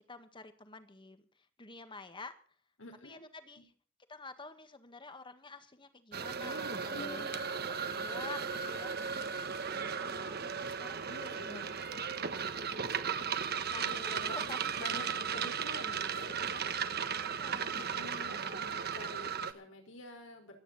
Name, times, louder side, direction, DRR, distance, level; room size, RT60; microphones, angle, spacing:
voice 1, 0.1-2.3 3.0-3.7 4.1-7.4 7.7-9.0 9.7-11.1 11.3-11.7 12.6-13.1 13.7-14.6 17.2-18.6, left 3 dB, 25° left, 10 dB, 1.6 m, -50 dB
voice 2, 2.8-3.2 3.6-3.7 6.9-7.3 11.1-11.8 13.8-16.7 17.7-20.6, left 2 dB, 85° left, 4 dB, 5.2 m, -48 dB
sound 1, 6.1-19.5, right 6 dB, 55° right, 1.3 m, -36 dB
27.0 x 9.7 x 4.2 m, 0.44 s
head